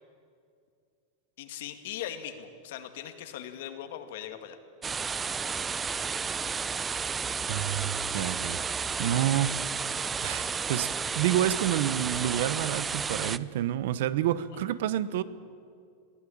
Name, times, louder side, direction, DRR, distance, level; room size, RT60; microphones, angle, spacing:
voice 1, 1.4-4.6 14.5-14.6, left 10 dB, 70° left, 8 dB, 2.2 m, -40 dB
sound 1, 4.8-13.4, right 5 dB, 15° right, 0.4 m, -32 dB
voice 2, 7.5-8.7 9.0-9.6 10.2-10.9 11.1-15.2, right 12 dB, 70° right, 17 dB, 0.9 m, -28 dB
22.0 x 16.0 x 8.7 m, 2.3 s
supercardioid pair, 150°, 0 cm